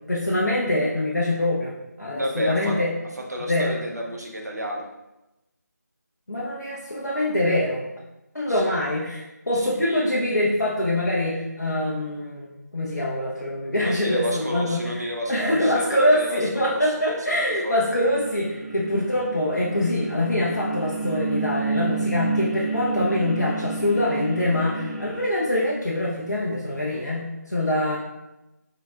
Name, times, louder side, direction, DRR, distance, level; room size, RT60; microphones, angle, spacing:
voice 1, 0.1-2.9 3.4-3.7 6.3-7.8 8.3-28.0, left 1 dB, 70° left, -6 dB, 0.7 m, -24 dB
voice 2, 2.1-2.8 3.3-4.9 8.5-8.6 9.5-10.1 13.8-16.8 17.1-17.7, equal, 65° right, 0 dB, 0.7 m, -31 dB
sound 1, 18.0-25.2, right 4 dB, 10° right, 1.4 m, -30 dB
3.7 x 3.2 x 2.4 m, 0.96 s
figure-of-eight pair, 165°, 9 cm